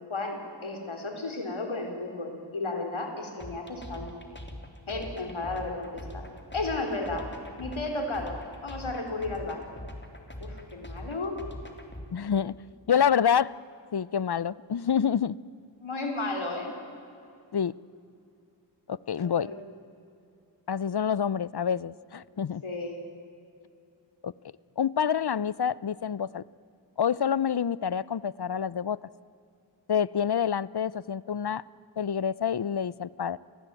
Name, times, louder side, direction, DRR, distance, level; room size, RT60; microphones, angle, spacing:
voice 1, 0.1-4.2 4.9-6.2 6.5-7.3 7.6-9.6 10.4-11.3 15.8-16.7 19.1-19.6 22.3-23.0, left 2 dB, 85° left, 3 dB, 4.3 m, -34 dB
sound 1, 3.4-12.1, left 1 dB, 25° left, 3.5 m, -42 dB
voice 2, 12.1-12.5 12.9-13.6 13.9-15.4 17.5-17.7 18.9-19.5 20.7-22.6 24.2-24.3 24.8-26.4 27.0-29.1 29.9-31.6 32.0-33.4, left 8 dB, 55° left, 21 dB, 0.7 m, -27 dB
29.0 x 19.0 x 9.1 m, 2.6 s
wide cardioid pair, 55°, 47 cm